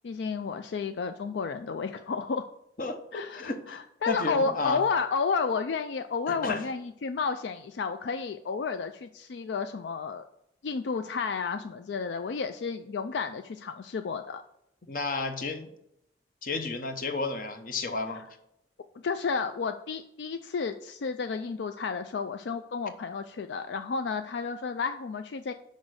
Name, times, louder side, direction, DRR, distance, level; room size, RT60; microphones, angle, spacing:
voice 1, 0.0-2.5 3.1-10.2 10.6-14.4 19.0-25.5, left 5 dB, 75° left, 8 dB, 0.4 m, -31 dB
voice 2, 2.8-3.8 4.1-4.8 6.3-6.6 14.9-15.7 16.4-18.2, left 3 dB, 50° left, 7 dB, 0.9 m, -32 dB
6.2 x 5.2 x 6.3 m, 0.79 s
head